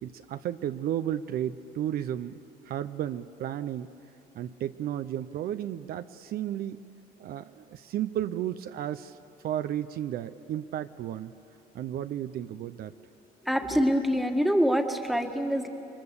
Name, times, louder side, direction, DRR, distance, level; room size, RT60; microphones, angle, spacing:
voice 1, 0.0-3.9 4.4-6.8 7.2-9.2 9.4-11.3 11.7-12.9, right 11 dB, 65° right, 10 dB, 0.7 m, -33 dB
voice 2, 13.4-15.7, equal, ahead, 4 dB, 1.7 m, -25 dB
29.0 x 22.5 x 6.9 m, 2.9 s
cardioid pair, 110°, 17 cm